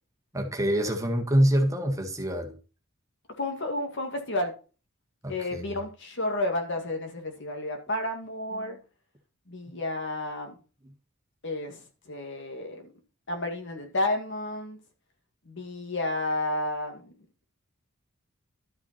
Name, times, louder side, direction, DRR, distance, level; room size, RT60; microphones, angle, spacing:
voice 1, 0.3-2.5 5.2-5.7 10.8-10.9, equal, 15° right, 1.6 m, -26 dB
voice 2, 3.4-4.5 5.3-8.8 9.5-10.5 11.4-12.9 13.3-14.8 15.5-17.1, left 1 dB, 60° left, 2.1 m, -31 dB
12.0 x 5.9 x 4.3 m
head